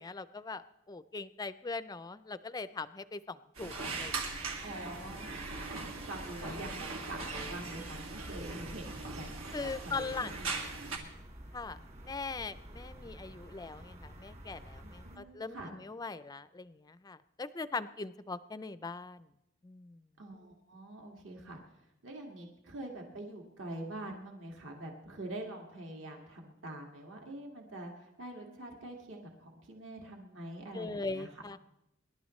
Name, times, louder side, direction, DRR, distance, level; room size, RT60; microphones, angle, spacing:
voice 1, 0.0-4.5 4.8-5.0 6.4-6.7 9.5-10.3 11.5-11.8 12.0-19.3 19.6-20.0 30.7-31.6, left 3 dB, 20° left, 15 dB, 0.4 m, -41 dB
sound 1, 3.6-11.0, right 3 dB, 85° right, 2.3 m, -40 dB
sound 2, 4.0-15.2, right 1 dB, 35° right, 1.8 m, -51 dB
voice 2, 4.6-11.1 15.0-15.7 20.2-21.6 22.0-31.3, right 1 dB, 65° right, 0 dB, 1.9 m, -45 dB
25.5 x 11.5 x 3.2 m, 0.88 s
head